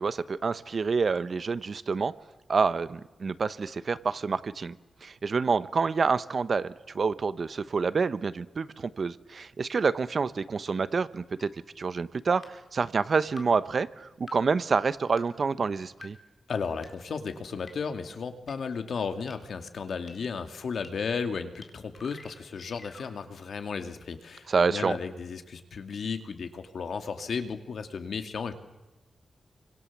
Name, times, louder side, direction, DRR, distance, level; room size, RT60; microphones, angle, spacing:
voice 1, 0.0-2.1 2.5-4.7 5.0-11.5 11.8-16.2 24.5-25.0, right 5 dB, 50° right, 14 dB, 1.0 m, -28 dB
sound 1, 11.4-11.5 12.4-12.5 13.4-13.5 14.3-14.4 15.2-15.3 16.0-16.1 16.8-16.9 17.7-17.8 18.5-18.6 19.3-19.4 20.1-20.2 20.8-20.9 21.6-21.7 21.9-23.1, left 3 dB, 40° left, 4.4 m, -47 dB
voice 2, 16.5-28.5, left 5 dB, 70° left, 7 dB, 2.3 m, -34 dB
29.5 x 25.5 x 7.4 m, 1.1 s
wide cardioid pair, 115°, 0 cm